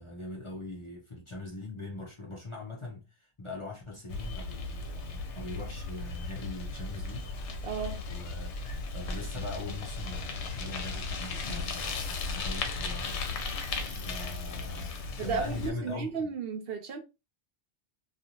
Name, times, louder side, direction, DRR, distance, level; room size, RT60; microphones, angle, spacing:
voice 1, 0.0-7.3 8.1-8.5 8.9-16.3, left 2 dB, 35° left, 0.6 m, -42 dB
Bicycle, 4.1-15.7, left 3 dB, 85° left, 1.0 m, -36 dB
voice 2, 7.6-8.0 15.2-17.0, right 5 dB, 65° right, 0.8 m, -34 dB
2.6 x 2.4 x 2.9 m
omnidirectional pair, 1.1 m